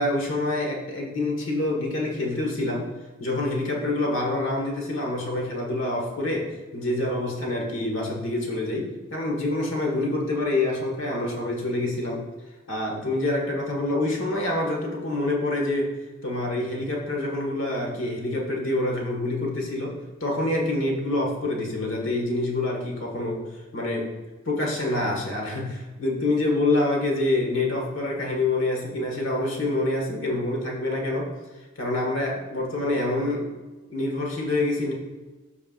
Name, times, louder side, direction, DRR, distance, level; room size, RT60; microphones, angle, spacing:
voice 1, 0.0-2.9 3.2-12.2 12.7-15.9 16.2-23.4 23.7-24.1 24.5-31.3 31.8-33.5 33.9-34.9, left 2 dB, 85° left, 0 dB, 1.7 m, -26 dB
13.0 x 4.8 x 2.5 m, 1.2 s
head